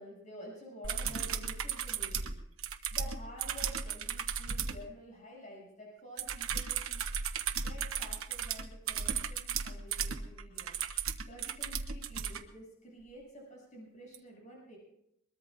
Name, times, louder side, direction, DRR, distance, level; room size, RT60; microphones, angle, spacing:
voice 1, 0.0-2.4 2.9-7.0 7.6-10.7 11.2-14.8, equal, 35° left, -3 dB, 7.8 m, -50 dB
sound 1, 0.8-4.8 6.2-12.4 14.1-14.2, right 7 dB, 75° right, 1.1 m, -35 dB
22.0 x 21.5 x 2.6 m, 0.79 s
head